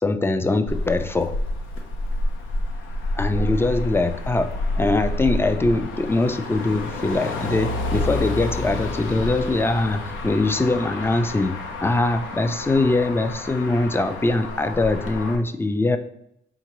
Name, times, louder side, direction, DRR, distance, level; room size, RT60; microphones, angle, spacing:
voice 1, 0.0-1.3 3.2-4.5 4.8-11.5 11.8-16.0, left 2 dB, 10° left, 10 dB, 0.4 m, -22 dB
Motor vehicle (road), 0.7-15.4, left 2 dB, 80° left, 0.7 m, -29 dB
4.3 x 3.7 x 3.0 m, 0.74 s
cardioid pair, 90°, 20 cm